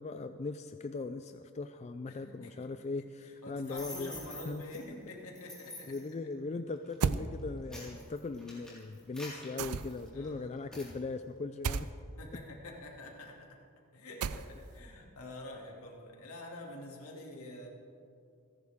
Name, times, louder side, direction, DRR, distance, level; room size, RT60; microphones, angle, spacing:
voice 1, 0.0-4.1 4.5-4.6 5.9-11.9, left 3 dB, 30° left, 9 dB, 0.3 m, -39 dB
voice 2, 2.1-2.7 3.0-5.9 10.1-10.6 12.2-13.6 13.9-17.7, left 1 dB, 75° left, -1 dB, 2.5 m, -47 dB
sound 1, 3.6-4.8 5.3-6.1 6.7-6.9 7.4-10.2 10.7-10.9, left 1 dB, 5° left, 4.3 m, -47 dB
sound 2, 7.0-7.3 9.6-10.1 11.6-11.9 14.2-14.7, right 5 dB, 80° right, 0.5 m, -32 dB
28.5 x 11.0 x 3.6 m, 2.5 s
head